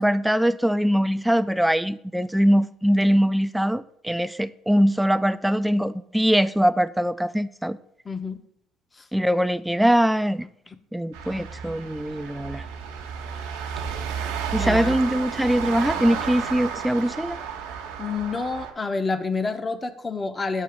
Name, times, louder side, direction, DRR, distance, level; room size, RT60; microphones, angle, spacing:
voice 1, 0.0-7.8 9.1-10.5 10.9-12.6 14.5-17.4, equal, 5° right, 0.3 m, -22 dB
voice 2, 8.0-8.4 8.9-9.1 10.7-10.8 11.4-11.5 14.6-15.0 18.0-20.6, left 4 dB, 25° left, 0.7 m, -28 dB
sound 1, 11.1-18.7, right 7 dB, 85° right, 0.9 m, -32 dB
8.2 x 2.8 x 6.0 m
hypercardioid pair, 70°, 0 cm